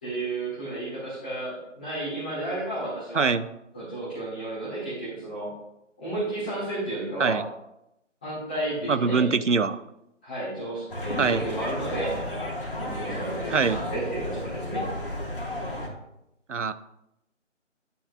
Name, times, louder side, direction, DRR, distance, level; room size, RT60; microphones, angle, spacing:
voice 1, 0.0-3.3 3.7-5.5 6.0-7.4 8.2-9.3 10.2-12.2 12.7-14.8, right 1 dB, 5° left, -11 dB, 1.7 m, -32 dB
voice 2, 3.1-3.5 7.2-7.4 8.9-9.8 11.2-11.5 13.5-13.8 16.5-16.7, right 5 dB, 70° right, 13 dB, 0.6 m, -23 dB
sound 1, 10.9-15.9, left 1 dB, 45° left, 1.7 m, -33 dB
9.7 x 8.9 x 2.4 m, 0.85 s
figure-of-eight pair, 165°, 38 cm